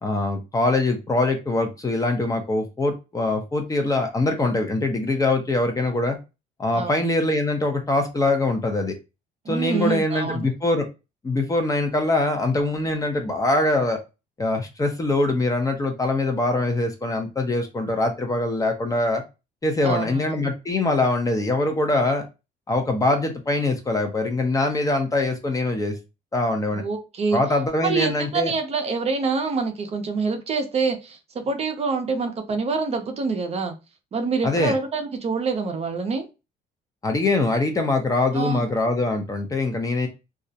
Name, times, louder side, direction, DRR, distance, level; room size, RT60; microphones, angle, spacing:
voice 1, 0.0-6.2 6.6-8.9 9.5-10.8 11.2-14.0 14.4-19.2 19.6-22.2 22.7-26.0 26.3-26.8 27.3-28.5 34.4-34.7 37.0-40.1, left 2 dB, 20° left, 4 dB, 0.6 m, -23 dB
voice 2, 6.7-7.0 9.4-10.4 19.8-20.5 26.7-27.4 27.8-33.7 34.1-36.3 38.3-38.7, right 4 dB, 40° right, 6 dB, 0.5 m, -26 dB
2.3 x 2.0 x 2.6 m, 0.27 s
cardioid pair, 110°, 17 cm